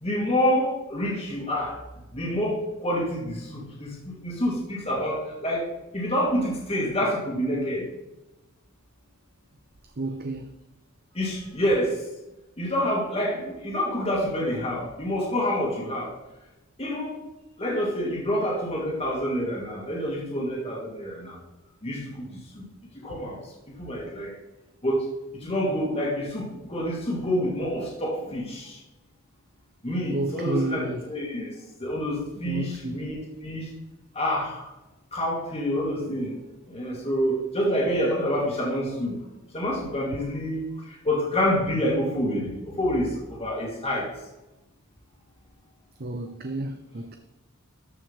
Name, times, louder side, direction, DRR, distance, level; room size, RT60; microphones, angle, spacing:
voice 1, 0.0-1.7 2.1-5.6 5.9-7.9 11.1-12.0 12.6-16.1 16.8-17.1 17.6-21.4 21.8-22.3 22.6-22.7 23.0-23.4 23.8-24.3 24.8-25.0 25.3-28.8 29.8-31.5 31.8-33.6 34.1-34.6 35.1-36.3 36.7-39.1 39.5-40.6 41.0-44.1, equal, 30° left, 2.3 m, -27 dB
voice 2, 10.0-10.5 30.1-31.0 32.4-32.9 46.0-47.2, right 2 dB, 45° right, 0.6 m, -31 dB
13.5 x 6.0 x 3.6 m
head